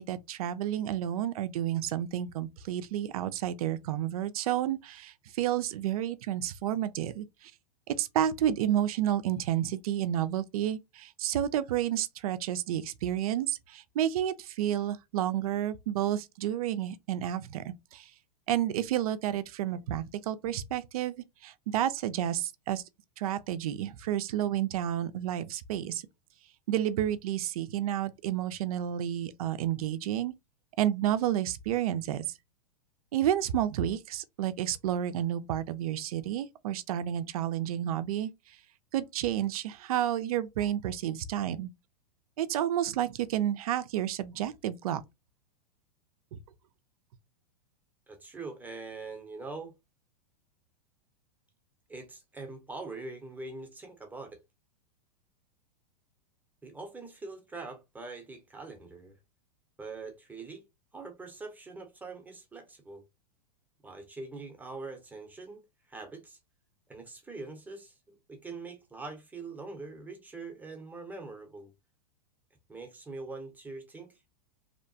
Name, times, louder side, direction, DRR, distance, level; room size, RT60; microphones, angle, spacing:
voice 1, 0.0-7.5 7.9-18.1 18.5-22.8 23.2-26.0 26.7-30.3 30.8-32.2 33.1-38.3 38.9-41.7 42.4-45.0 46.3-46.4, right 11 dB, 65° right, 0.4 m, -30 dB
voice 2, 48.1-49.7 51.9-54.4 56.6-59.2 59.8-60.6 60.9-63.0 63.8-66.4 66.9-71.7 72.7-74.3, right 3 dB, 10° right, 0.7 m, -43 dB
2.8 x 2.2 x 2.6 m
hypercardioid pair, 105°, 20 cm